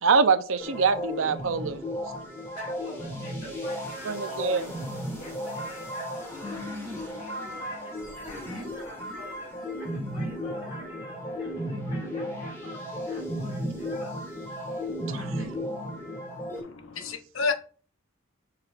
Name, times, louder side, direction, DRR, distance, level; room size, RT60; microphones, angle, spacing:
voice 1, 0.0-1.9 4.1-4.7 15.0-15.2, right 5 dB, 70° right, 0.6 m, -24 dB
sound 1, 0.6-16.6, equal, 15° left, 2.4 m, -34 dB
voice 2, 2.5-4.2 4.5-4.7 5.2-6.6 7.0-9.5 9.8-14.2 15.1-15.7, equal, 45° left, 2.0 m, -46 dB
voice 3, 16.5-17.6, left 4 dB, 70° left, 0.8 m, -30 dB
7.5 x 6.1 x 2.5 m
head